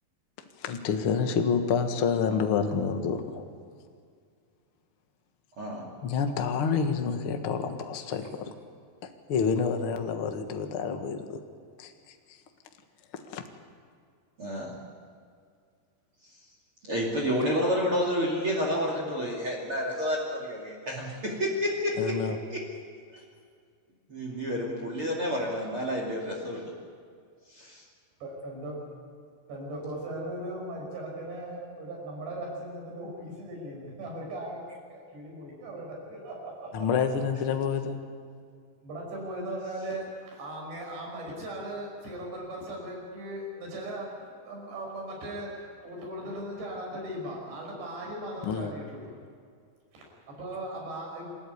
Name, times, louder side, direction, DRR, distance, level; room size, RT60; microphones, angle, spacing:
voice 1, 0.6-3.5 6.0-8.5 9.3-11.4 11.8-11.9 13.3-13.4 22.0-22.4 36.7-38.0 48.4-48.7, left 6 dB, 75° left, 5 dB, 1.2 m, -28 dB
voice 2, 5.6-5.9 14.4-14.7 16.8-22.2 22.5-22.6 23.1-23.2 24.1-26.7, equal, 35° right, -1 dB, 2.9 m, -29 dB
voice 3, 28.2-28.8 29.5-34.6 34.9-36.9 38.8-44.1 44.4-49.1 49.9-51.3, right 1 dB, 90° right, -1 dB, 8.4 m, -38 dB
27.5 x 14.0 x 9.6 m, 2.2 s
omnidirectional pair, 4.9 m